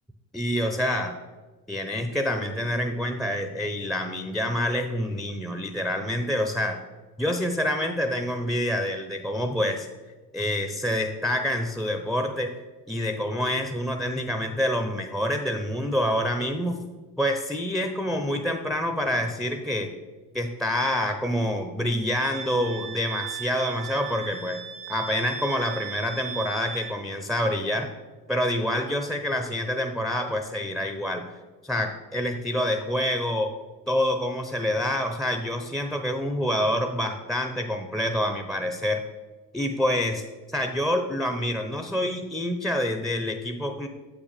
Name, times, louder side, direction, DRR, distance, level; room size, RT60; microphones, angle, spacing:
voice 1, 0.3-1.1 1.7-6.8 7.2-9.9 10.3-12.5 12.9-16.8 17.2-19.9 20.3-24.6 24.9-27.9 28.3-31.3 31.6-33.5 33.9-39.0 39.5-43.9, left 1 dB, ahead, 5 dB, 0.6 m, -27 dB
Wind instrument woodwind instrument, 22.1-27.0, right 7 dB, 80° right, 1.5 m, -37 dB
7.7 x 6.1 x 4.2 m, 1.3 s
hypercardioid pair, 60°, 46 cm